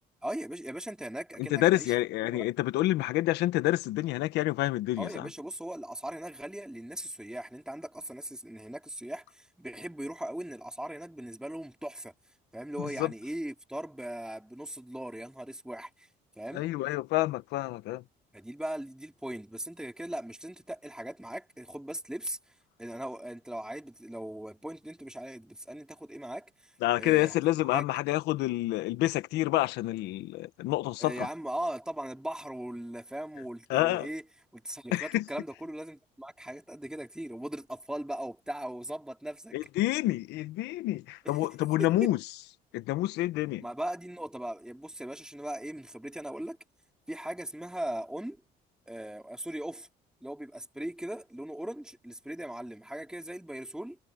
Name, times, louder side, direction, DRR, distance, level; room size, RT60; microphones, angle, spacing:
voice 1, 0.2-1.9 2.3-2.5 5.0-12.1 12.5-16.1 16.4-16.6 18.3-22.4 22.8-26.7 27.0-27.8 31.0-34.2 34.5-39.6 41.2-42.1 43.6-46.6 47.1-48.4 48.9-49.9 50.2-54.0, right 1 dB, 5° right, 4.4 m, -39 dB
voice 2, 1.4-5.3 12.8-13.1 16.5-18.0 26.8-31.3 33.7-34.1 34.9-35.2 39.5-42.2 42.7-43.6, left 16 dB, 85° left, 1.4 m, -28 dB
cardioid pair, 110°, 17 cm